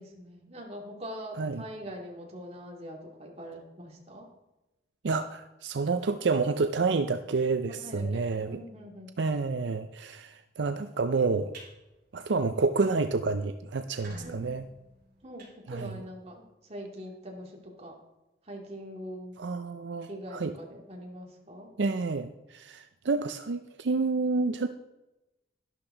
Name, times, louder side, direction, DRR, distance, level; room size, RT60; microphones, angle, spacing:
voice 1, 0.0-4.3 7.7-9.1 14.2-14.6 15.2-18.0 18.4-19.4 20.1-21.7, equal, 35° right, 0 dB, 2.6 m, -43 dB
voice 2, 5.0-8.6 9.2-11.5 12.1-14.6 15.7-15.9 19.4-20.5 21.8-24.7, right 4 dB, 80° right, 9 dB, 0.5 m, -29 dB
sound 1, 11.5-11.7 12.2-12.4 12.8-12.9 13.1-13.2 13.7-16.3, right 2 dB, 55° right, 3.9 m, -49 dB
12.0 x 12.0 x 3.9 m, 0.98 s
head